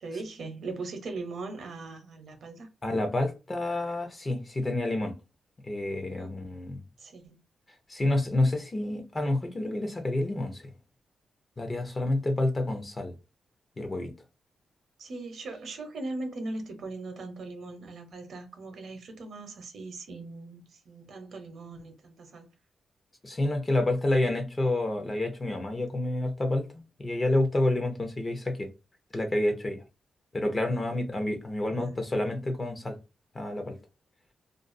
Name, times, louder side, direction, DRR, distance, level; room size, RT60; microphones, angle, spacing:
voice 1, 0.0-2.7 6.2-6.4 7.0-7.4 15.0-22.5 31.6-32.0, right 3 dB, 65° right, 0.7 m, -40 dB
voice 2, 2.8-5.1 5.6-6.8 7.9-10.6 11.6-13.2 13.8-14.1 23.2-26.7 27.0-28.7 29.1-29.8 30.3-33.0 33.3-33.8, left 1 dB, 20° left, 0.6 m, -28 dB
2.5 x 2.4 x 2.5 m
wide cardioid pair, 150°, 0 cm